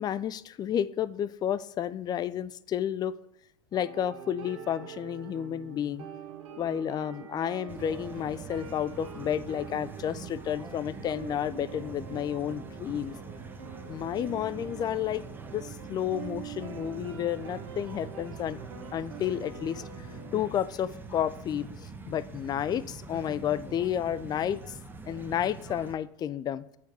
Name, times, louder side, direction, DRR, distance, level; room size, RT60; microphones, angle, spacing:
voice 1, 0.0-3.1 3.7-6.1 6.6-13.1 13.9-15.3 15.5-18.6 18.9-19.8 20.3-21.7 22.1-24.6 25.1-26.6, left 10 dB, 25° left, 16 dB, 0.4 m, -31 dB
sound 1, 3.7-20.5, right 8 dB, 70° right, 1.4 m, -45 dB
sound 2, 7.7-25.9, right 4 dB, 10° right, 0.8 m, -44 dB
8.1 x 4.6 x 4.6 m, 0.74 s
hypercardioid pair, 90°, 17 cm